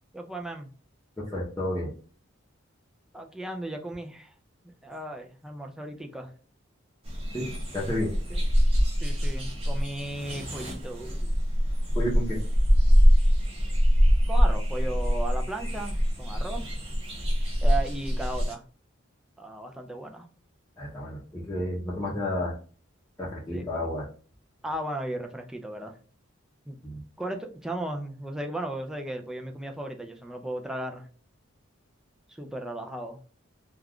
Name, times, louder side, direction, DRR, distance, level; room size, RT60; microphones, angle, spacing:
voice 1, 0.1-0.7 3.1-4.3 4.6-6.3 8.3-8.4 9.0-11.3 14.3-16.7 17.6-18.7 19.4-20.3 23.5-23.8 24.6-25.9 26.7-26.8 27.2-31.1 32.4-33.2, right 1 dB, 5° right, 3 dB, 0.3 m, -36 dB
voice 2, 1.2-1.9 7.3-8.1 11.9-12.4 20.8-22.5 23.2-24.1 26.8-27.0, left 1 dB, 15° left, -7 dB, 0.7 m, -31 dB
sound 1, 7.1-18.5, equal, 30° right, 0.8 m, -24 dB
2.3 x 2.2 x 3.5 m, 0.40 s
head